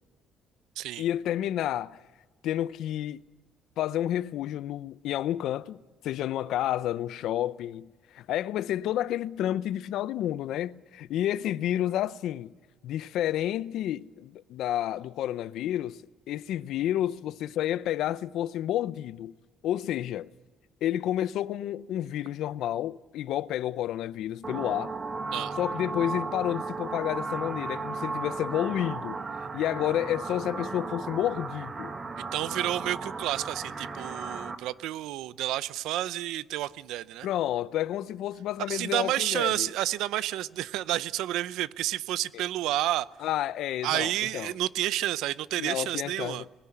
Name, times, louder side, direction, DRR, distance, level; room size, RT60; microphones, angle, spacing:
voice 1, 1.0-2.0 2.4-3.2 3.8-12.5 12.8-16.0 16.3-19.4 19.6-20.3 20.8-25.0 25.6-31.9 37.2-39.7 42.3-42.4 43.2-44.5 45.6-46.5, left 12 dB, 70° left, 0.6 m, -30 dB
sound 1, 24.4-34.6, right 4 dB, 20° right, 1.4 m, -35 dB
voice 2, 32.3-37.3 38.7-43.1 43.8-46.4, right 14 dB, 90° right, 0.6 m, -30 dB
21.0 x 17.0 x 10.0 m
cardioid pair, 155°, 0 cm